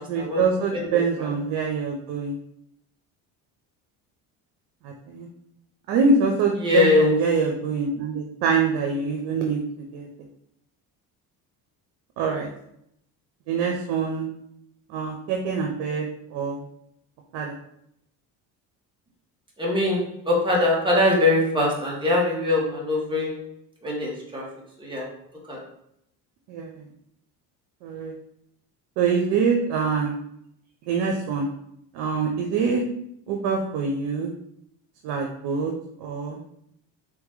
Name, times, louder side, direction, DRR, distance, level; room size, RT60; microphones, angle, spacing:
voice 1, 0.1-2.3 4.8-5.3 5.9-10.1 12.2-12.5 13.5-14.3 14.9-16.6 17.3-17.6 26.5-26.8 27.8-28.1 29.0-30.2 30.9-31.5 31.9-32.8 33.3-34.3 35.0-35.7 36.0-36.4, right 5 dB, 90° right, 1 dB, 0.8 m, -25 dB
voice 2, 6.6-7.1 19.6-23.4 23.8-24.4 24.8-25.0 25.5-25.6, left 2 dB, 15° right, -4 dB, 1.4 m, -22 dB
3.8 x 3.0 x 3.7 m, 0.73 s
cardioid pair, 120°, 38 cm